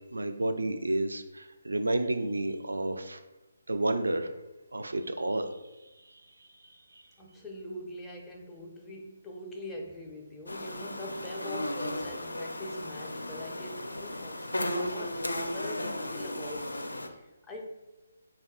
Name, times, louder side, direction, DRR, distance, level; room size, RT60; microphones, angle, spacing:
voice 1, 0.1-3.2 3.7-4.3 4.7-5.5 6.1-6.2 6.9-7.0, right 2 dB, 70° right, 7 dB, 0.3 m, -30 dB
voice 2, 7.2-17.7, left 1 dB, 5° left, -1 dB, 0.4 m, -43 dB
sound 1, 10.5-17.1, left 1 dB, 75° left, 0.4 m, -35 dB
2.6 x 2.3 x 3.5 m, 1.1 s
figure-of-eight pair, 140°, 0 cm